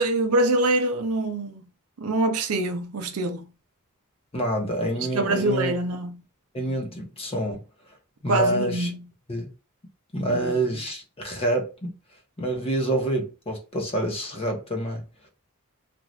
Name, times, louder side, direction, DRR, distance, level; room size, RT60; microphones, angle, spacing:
voice 1, 0.0-1.6 2.0-3.5 5.1-6.2 8.3-9.1 10.3-10.6, right 2 dB, 85° right, 0.6 m, -25 dB
voice 2, 4.3-5.8 6.5-7.6 8.2-8.9 9.3-9.5 10.1-11.9 12.4-15.3, right 1 dB, 25° left, 0.8 m, -27 dB
2.6 x 2.4 x 3.1 m
head